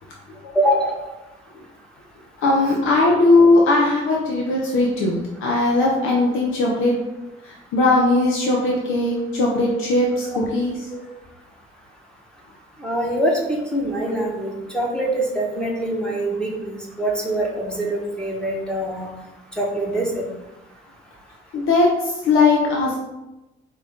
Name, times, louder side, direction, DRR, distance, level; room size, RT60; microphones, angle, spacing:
voice 1, 0.5-1.0 10.3-10.4 10.9-11.0 12.8-19.1 19.6-20.3, right 1 dB, 5° left, -2 dB, 1.1 m, -24 dB
voice 2, 2.4-7.0 7.4-10.8 21.5-23.0, left 2 dB, 85° left, -2 dB, 0.8 m, -19 dB
4.9 x 2.9 x 3.6 m, 0.99 s
cardioid pair, 90°, 20 cm